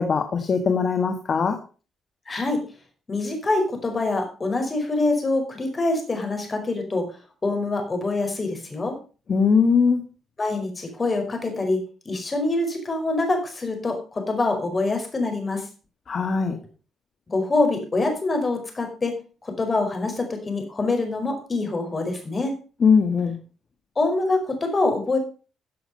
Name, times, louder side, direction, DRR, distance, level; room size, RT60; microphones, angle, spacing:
voice 1, 0.0-1.6 9.3-10.0 16.1-16.6 22.8-23.3, left 5 dB, 45° left, 6 dB, 1.9 m, -20 dB
voice 2, 2.3-2.6 3.1-7.1 7.4-9.0 10.4-15.6 17.3-22.5 24.0-25.2, left 2 dB, 30° left, 4 dB, 5.2 m, -25 dB
14.5 x 7.7 x 5.5 m, 0.36 s
cardioid pair, 90°, 0 cm